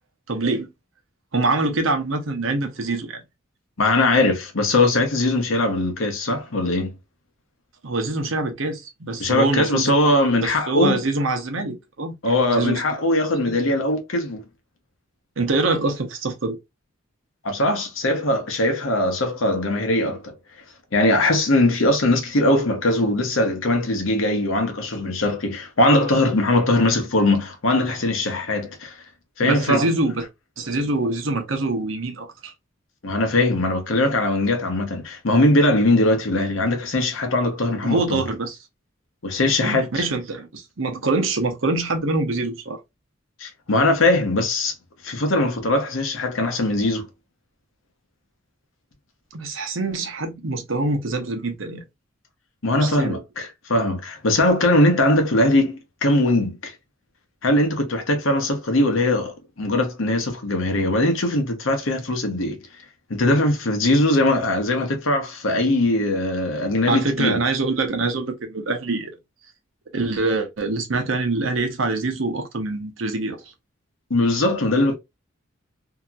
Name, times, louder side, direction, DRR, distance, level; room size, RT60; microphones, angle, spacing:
voice 1, 0.3-0.7 1.3-3.2 7.8-9.9 10.4-12.1 12.5-12.8 13.5-13.6 15.4-16.6 29.4-30.3 30.6-32.5 37.8-38.6 39.6-42.8 49.3-51.8 52.8-53.2 66.9-69.1 69.9-73.4, right 3 dB, 75° right, 0.9 m, -24 dB
voice 2, 3.8-7.0 9.2-11.0 12.2-14.4 17.4-20.3 20.9-28.9 29.4-29.8 33.0-38.2 39.2-40.0 43.4-44.7 45.0-47.0 52.6-56.7 57.4-62.6 63.1-67.4 74.1-74.9, left 1 dB, 80° left, 0.9 m, -20 dB
2.8 x 2.8 x 2.4 m
head